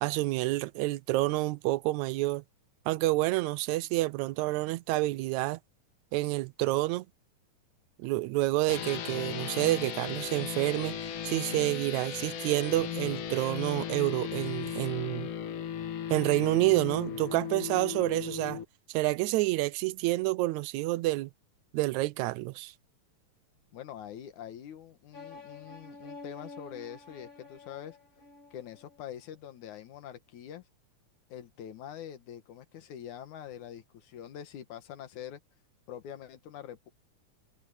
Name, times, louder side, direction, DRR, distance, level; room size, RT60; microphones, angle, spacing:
voice 1, 0.0-2.4 2.9-5.6 6.1-7.1 8.0-15.3 16.1-18.6 18.9-21.3 21.7-22.7, right 19 dB, 75° right, 1.9 m, -28 dB
sound 1, 8.7-18.6, left 8 dB, 90° left, 3.2 m, -37 dB
voice 2, 23.7-28.0 28.5-30.6 31.3-35.4 35.9-36.9, left 10 dB, 75° left, 2.9 m, -44 dB
sound 2, 25.1-29.0, left 3 dB, 20° left, 1.8 m, -49 dB
omnidirectional pair, 3.6 m